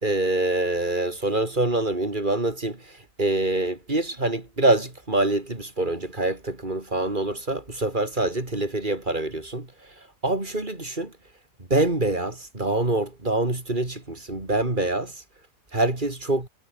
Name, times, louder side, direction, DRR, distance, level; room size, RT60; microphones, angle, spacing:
voice 1, 0.0-11.1 11.6-15.2 15.7-16.5, right 2 dB, 30° right, 4.0 m, -25 dB
omnidirectional pair, 1.7 m